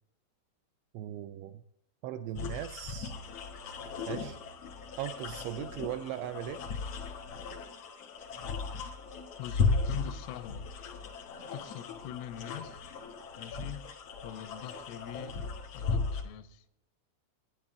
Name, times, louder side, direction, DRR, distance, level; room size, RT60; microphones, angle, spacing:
voice 1, 0.9-1.6 2.0-3.1 4.1-4.4 5.0-6.6, right 12 dB, 85° right, 9 dB, 2.6 m, -38 dB
sound 1, 2.3-16.2, left 4 dB, 70° left, 1.5 m, -36 dB
voice 2, 9.4-10.7 11.5-12.8 13.4-13.9 14.2-15.5 15.7-16.6, left 12 dB, 90° left, 10 dB, 3.4 m, -43 dB
13.0 x 10.0 x 3.8 m, 0.81 s
omnidirectional pair, 5.7 m